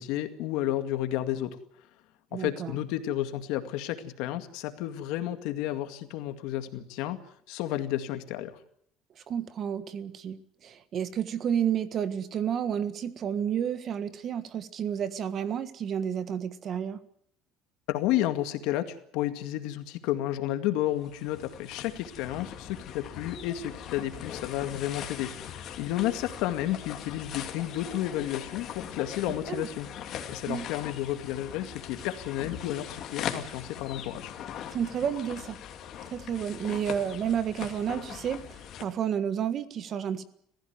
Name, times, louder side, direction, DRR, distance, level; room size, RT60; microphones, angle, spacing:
voice 1, 0.0-1.6 2.3-7.2 7.5-8.6 17.9-29.9 30.3-34.3, left 13 dB, 75° left, 9 dB, 2.1 m, -31 dB
voice 2, 2.3-2.7 9.2-17.0 29.3-29.7 30.5-30.7 34.7-35.6 36.1-40.2, right 8 dB, 40° right, 12 dB, 1.6 m, -31 dB
sound 1, 20.9-38.8, left 9 dB, 50° left, 2.6 m, -41 dB
24.0 x 15.5 x 9.5 m, 0.71 s
cardioid pair, 145°, 0 cm